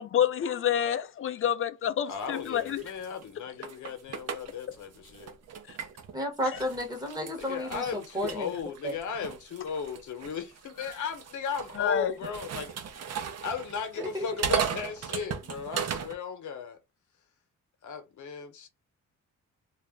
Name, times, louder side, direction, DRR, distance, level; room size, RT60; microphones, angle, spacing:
voice 1, 0.0-2.8 5.7-5.8 6.5-6.6 11.8-12.1, left 9 dB, 45° left, 0.4 m, -28 dB
voice 2, 2.1-5.3 7.4-12.7 13.4-16.8 17.8-18.7, left 6 dB, 65° left, 0.9 m, -36 dB
sound 1, 2.1-6.1 6.5-16.2, right 7 dB, 50° right, 0.6 m, -37 dB
voice 3, 6.1-8.5 8.8-8.9 14.0-14.2, equal, 10° right, 0.8 m, -32 dB
2.3 x 2.0 x 3.5 m
cardioid pair, 110°, 32 cm